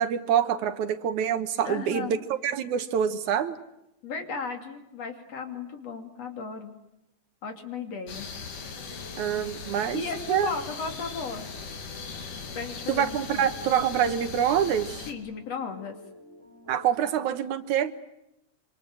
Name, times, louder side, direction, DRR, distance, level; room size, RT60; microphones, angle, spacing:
voice 1, 0.0-3.6 9.2-10.0 10.3-10.5 12.9-15.1 16.7-17.9, right 9 dB, 70° right, 11 dB, 2.5 m, -26 dB
voice 2, 1.6-2.2 4.0-6.7 7.4-8.3 9.7-11.5 12.6-13.5 15.1-16.0, left 5 dB, 55° left, 6 dB, 3.7 m, -35 dB
sound 1, 8.1-15.1, left 5 dB, 80° left, 4.2 m, -39 dB
sound 2, 8.7-17.3, equal, 10° left, 6.5 m, -50 dB
26.5 x 26.0 x 7.8 m, 0.86 s
omnidirectional pair, 3.6 m